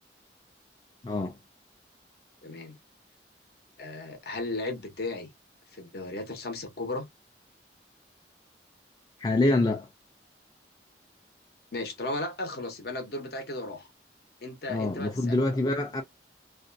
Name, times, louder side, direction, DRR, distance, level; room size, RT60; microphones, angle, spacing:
voice 1, 1.0-1.3 9.2-9.9 14.7-16.0, left 2 dB, 20° left, 0.4 m, -25 dB
voice 2, 2.4-2.8 3.8-5.3 5.7-7.1 11.7-13.9 14.4-15.4, left 2 dB, 60° left, 0.8 m, -35 dB
2.5 x 2.2 x 2.5 m
head